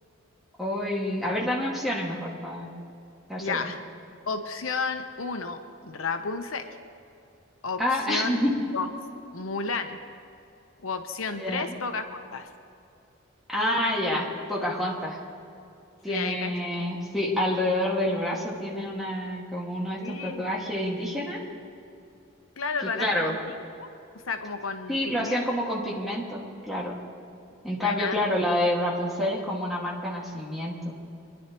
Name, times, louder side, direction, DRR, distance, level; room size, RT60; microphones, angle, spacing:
voice 1, 0.6-2.7 3.3-3.7 7.8-8.5 11.3-11.8 13.5-15.2 16.0-21.4 22.8-23.3 24.9-27.0 27.6-30.9, left 1 dB, ahead, -4 dB, 1.9 m, -28 dB
voice 2, 3.4-3.8 4.3-6.6 7.6-8.4 8.7-8.9 9.3-10.0 10.8-12.5 16.1-16.5 16.8-16.9 20.0-20.4 22.6-23.4 23.8-23.9 24.2-25.5 27.8-28.2, left 4 dB, 85° left, 7 dB, 0.9 m, -32 dB
23.5 x 11.0 x 3.0 m, 2.7 s
head